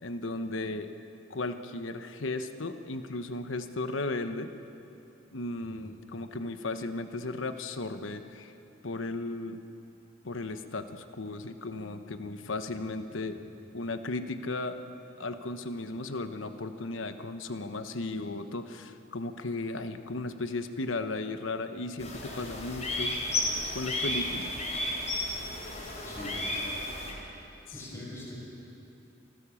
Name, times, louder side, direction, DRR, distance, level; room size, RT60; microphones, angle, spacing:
voice 1, 0.0-0.9 1.3-4.5 5.3-8.5 8.8-9.6 10.2-13.4 13.7-14.8 15.2-23.2 23.7-24.6 27.7-28.1, left 2 dB, 80° left, 9 dB, 1.1 m, -35 dB
sound 1, 22.0-27.1, left 1 dB, 35° left, 3.7 m, -33 dB
voice 2, 26.0-26.3 27.7-28.3, left 1 dB, 15° left, -5 dB, 6.6 m, -43 dB
27.0 x 15.0 x 7.1 m, 2.8 s
head